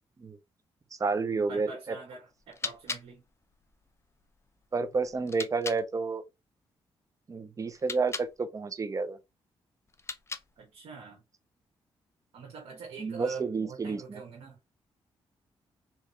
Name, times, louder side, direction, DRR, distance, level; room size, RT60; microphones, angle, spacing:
voice 1, 0.9-2.0 4.7-6.2 7.3-9.2 13.0-14.2, right 4 dB, 35° right, 0.6 m, -30 dB
voice 2, 1.5-3.2 10.6-11.2 12.3-14.6, right 5 dB, 80° right, 1.3 m, -44 dB
sound 1, 2.3-5.9 7.7-8.4 9.9-10.7, left 4 dB, 25° left, 0.6 m, -41 dB
3.4 x 2.9 x 2.8 m
cardioid pair, 65°, 10 cm